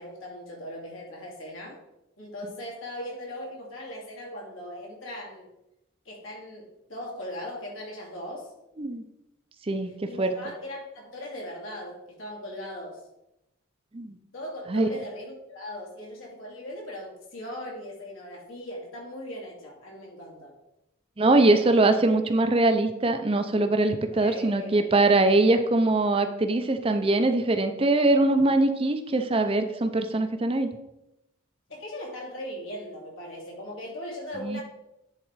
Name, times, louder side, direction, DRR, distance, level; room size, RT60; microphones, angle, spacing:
voice 1, 0.0-1.8 2.2-5.5 6.0-8.5 10.1-13.0 14.3-20.5 24.1-24.8 31.7-34.6, left 1 dB, 80° left, -2 dB, 2.7 m, -39 dB
voice 2, 9.7-10.3 13.9-14.2 14.7-14.9 21.2-30.7 34.4-34.6, right 2 dB, 25° right, 8 dB, 0.5 m, -22 dB
10.0 x 3.8 x 4.7 m, 0.89 s
head